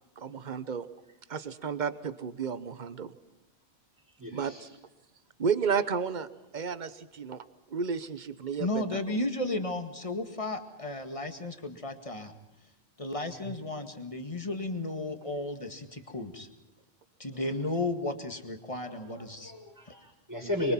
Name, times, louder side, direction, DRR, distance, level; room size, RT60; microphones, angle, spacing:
voice 1, 0.2-0.9 1.3-3.1 4.3-4.5 5.4-6.3 6.5-7.4 7.7-9.0, right 6 dB, 40° right, 15 dB, 1.1 m, -32 dB
voice 2, 4.2-4.7 13.4-13.5 18.9-20.7, left 1 dB, 15° right, 0 dB, 5.4 m, -35 dB
voice 3, 8.6-12.3 13.0-16.5 17.2-19.5, left 2 dB, 25° left, 7 dB, 2.0 m, -34 dB
25.0 x 23.0 x 5.8 m, 0.93 s
omnidirectional pair, 1.2 m